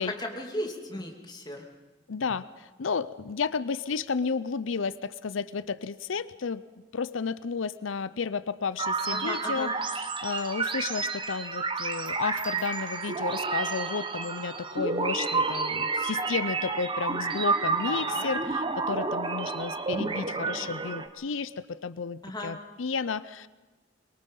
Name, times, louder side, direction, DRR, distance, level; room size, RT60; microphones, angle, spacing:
voice 1, 0.0-1.7 9.1-9.7 17.8-18.3 22.2-22.5, left 1 dB, 20° left, 2 dB, 2.6 m, -36 dB
voice 2, 2.1-6.6 6.9-23.5, left 5 dB, 80° left, 16 dB, 0.6 m, -32 dB
sound 1, 8.8-21.1, right 4 dB, 25° right, 1.2 m, -30 dB
23.0 x 22.5 x 5.5 m, 1.2 s
head